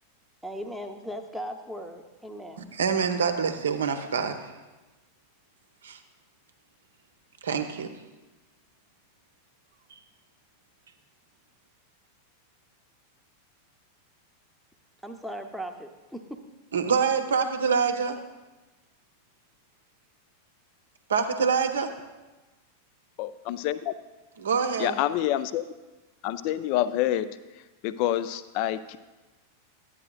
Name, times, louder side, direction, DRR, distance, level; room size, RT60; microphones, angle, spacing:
voice 1, 0.4-2.6 15.0-16.4, equal, ahead, 3 dB, 0.8 m, -38 dB
voice 2, 2.6-4.5 5.8-6.0 7.4-7.9 16.7-18.2 21.1-21.9 24.4-25.0, right 6 dB, 65° right, 7 dB, 0.7 m, -26 dB
voice 3, 23.2-23.9 24.8-25.6 26.2-27.3 27.8-29.0, left 12 dB, 45° left, 14 dB, 0.3 m, -27 dB
11.5 x 8.9 x 2.3 m, 1.2 s
figure-of-eight pair, 90°, 0 cm